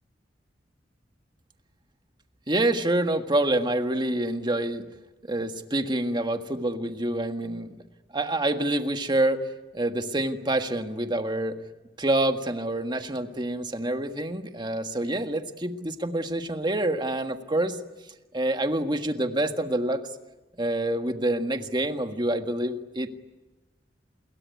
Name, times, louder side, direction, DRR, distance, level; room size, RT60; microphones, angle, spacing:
voice 1, 2.5-4.9 5.2-7.8 8.1-9.4 9.7-11.6 12.0-17.8 18.3-20.0 20.6-23.1, right 1 dB, 25° right, 7 dB, 1.6 m, -27 dB
28.0 x 22.0 x 9.6 m, 1.1 s
head